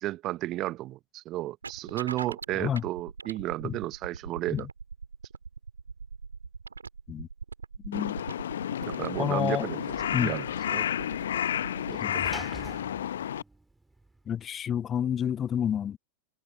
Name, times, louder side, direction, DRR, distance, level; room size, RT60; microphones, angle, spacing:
voice 1, 0.0-4.7 8.8-10.9 11.9-12.3, right 16 dB, 35° right, 1.0 m, -33 dB
sound 1, 1.6-11.9, right 5 dB, 75° right, 2.1 m, -42 dB
Crow, 7.9-13.4, left 10 dB, 65° left, 0.9 m, -31 dB
Sliding door / Slam, 8.6-14.4, right 2 dB, 5° right, 3.2 m, -48 dB
voice 2, 9.2-9.7 10.1-10.3 12.0-12.2 14.3-16.0, left 9 dB, 25° left, 0.3 m, -29 dB
figure-of-eight pair, 90°, 0 cm